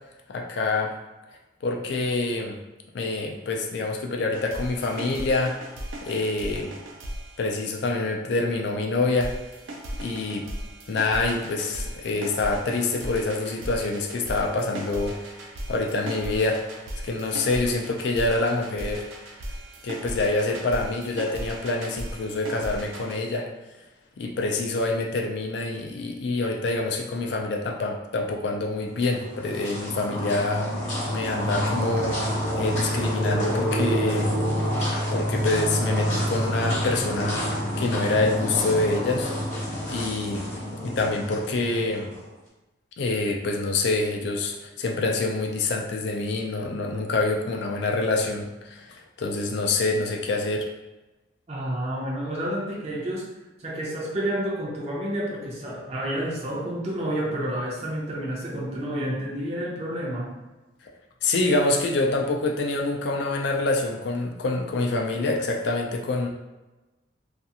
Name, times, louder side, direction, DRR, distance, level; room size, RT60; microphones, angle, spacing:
voice 1, 0.3-0.9 1.6-2.6 2.9-5.6 6.0-6.7 7.4-9.3 10.0-10.5 10.9-15.4 15.7-16.6 17.0-19.1 19.8-23.5 24.2-30.7 31.1-34.4 35.1-37.5 37.8-39.3 39.8-40.5 40.8-42.1 43.0-50.7 61.2-66.3, left 2 dB, 60° left, 1 dB, 0.4 m, -26 dB
sound 1, 4.3-8.1 9.2-23.2, right 1 dB, 90° right, 0.5 m, -37 dB
sound 2, 28.9-42.2, equal, 35° left, 0.8 m, -28 dB
voice 2, 51.5-53.3 53.6-60.3, right 1 dB, 35° right, -3 dB, 0.5 m, -30 dB
2.4 x 2.4 x 2.7 m, 1.1 s
head